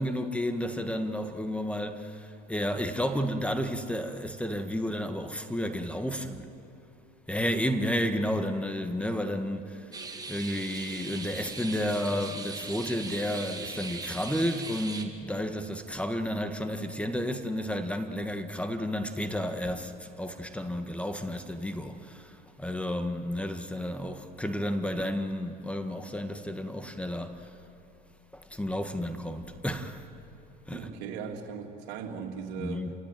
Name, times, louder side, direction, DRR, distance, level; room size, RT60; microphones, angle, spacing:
voice 1, 0.0-6.5 7.3-9.9 10.3-27.5 28.3-30.1 30.7-30.9 32.6-32.9, equal, 5° left, 1.7 m, -32 dB
sound 1, 9.9-15.0, right 4 dB, 20° right, 2.7 m, -39 dB
voice 2, 30.7-32.9, right 6 dB, 70° right, 3.0 m, -38 dB
29.5 x 17.5 x 9.3 m
supercardioid pair, 90°, 21 cm